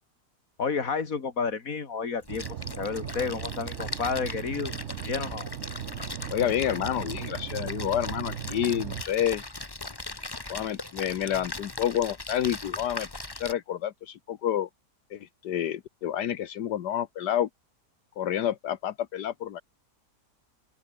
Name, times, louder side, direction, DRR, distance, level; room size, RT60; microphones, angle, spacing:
voice 1, 0.6-2.5 2.8-4.8 5.1-5.5, left 5 dB, 55° left, 2.7 m, -30 dB
Splash splatter, 2.2-13.5, left 2 dB, 15° left, 1.3 m, -39 dB
sound 1, 2.3-9.0, right 10 dB, 55° right, 0.9 m, -37 dB
voice 2, 6.3-9.4 10.5-13.1 13.3-14.7 15.1-17.5 18.2-19.6, left 10 dB, 80° left, 1.6 m, -29 dB
open air
omnidirectional pair, 1.7 m